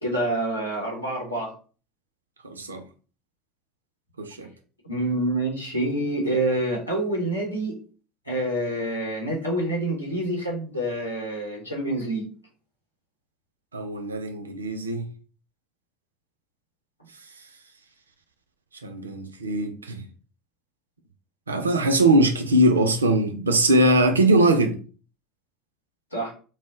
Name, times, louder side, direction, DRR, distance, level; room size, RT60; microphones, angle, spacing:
voice 1, 0.0-1.5 4.8-7.8 8.3-12.3 26.1-26.3, right 1 dB, 90° left, 0.8 m, -27 dB
voice 2, 2.4-2.8 4.2-4.5 13.7-15.1 18.8-20.0 21.5-24.8, right 1 dB, 80° right, 0.3 m, -21 dB
2.1 x 2.0 x 3.7 m
figure-of-eight pair, 65°, 0 cm